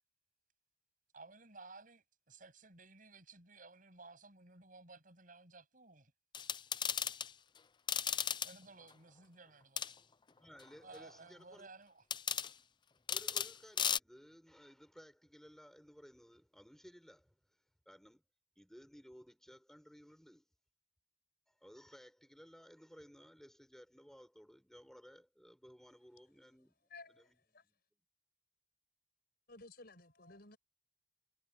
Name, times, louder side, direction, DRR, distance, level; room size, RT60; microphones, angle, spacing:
voice 1, 1.1-6.1 8.4-10.0 10.8-12.0, right 3 dB, 45° right, 7.9 m, -57 dB
sound 1, 6.3-7.3 7.9-8.5 9.8-9.9 12.1-12.5 13.1-13.5 13.8-14.0, left 8 dB, 25° left, 0.5 m, -35 dB
voice 2, 10.4-11.7 13.1-18.2 18.6-20.4 21.5-26.8 27.1-27.7, equal, ahead, 6.4 m, -58 dB
voice 3, 26.9-27.3 27.5-27.6 29.5-30.6, left 3 dB, 55° left, 5.6 m, -55 dB
head